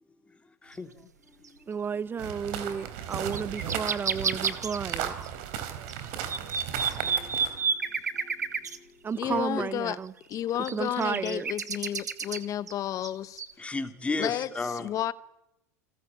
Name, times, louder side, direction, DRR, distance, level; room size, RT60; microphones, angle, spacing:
voice 1, 0.6-0.9 1.5-1.6 2.7-2.8 7.0-8.9 9.3-9.4 13.6-14.9, left 3 dB, 15° left, 2.9 m, -36 dB
sound 1, 1.4-1.5 2.7-2.8 3.1-5.3 5.6-5.7 5.9-8.8 10.1-12.7 13.0-13.1 13.4-13.5, right 5 dB, 85° right, 1.5 m, -30 dB
voice 2, 1.7-5.1 9.0-10.1 10.7-11.5, right 6 dB, 25° right, 0.9 m, -32 dB
sound 2, 2.2-7.6, right 9 dB, 60° right, 4.1 m, -36 dB
voice 3, 9.2-10.0 10.3-13.4 14.2-15.1, left 11 dB, 40° left, 1.1 m, -32 dB
29.0 x 20.5 x 8.8 m
figure-of-eight pair, 80°, 9 cm